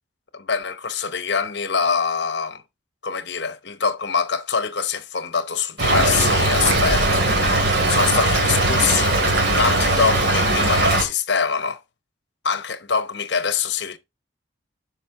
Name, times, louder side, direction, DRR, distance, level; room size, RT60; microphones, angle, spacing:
voice 1, 0.3-2.6 3.0-9.2 9.6-11.8 12.4-14.0, left 6 dB, 60° left, 0.9 m, -24 dB
Stream / Trickle dribble, 5.8-11.0, right 1 dB, 60° right, 2.5 m, -19 dB
12.0 x 5.1 x 3.7 m
head